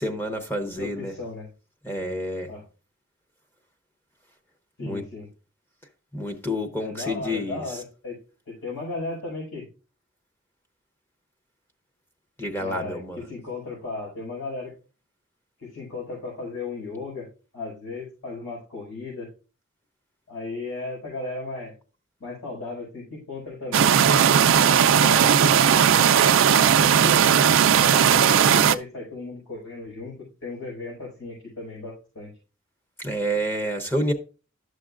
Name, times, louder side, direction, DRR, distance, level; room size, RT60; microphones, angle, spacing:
voice 1, 0.0-1.1 1.8-2.5 4.8-5.0 6.1-7.6 12.4-13.2 33.0-34.1, equal, 10° left, 0.7 m, -28 dB
voice 2, 0.8-1.5 2.5-2.6 4.8-5.3 6.8-8.2 8.5-9.6 12.6-14.7 15.6-17.3 17.5-19.3 20.3-21.7 22.2-24.3 24.9-25.4 26.4-32.3, left 3 dB, 75° left, 4.8 m, -35 dB
sound 1, 23.7-28.7, right 8 dB, 65° right, 0.4 m, -17 dB
11.5 x 6.6 x 2.4 m
head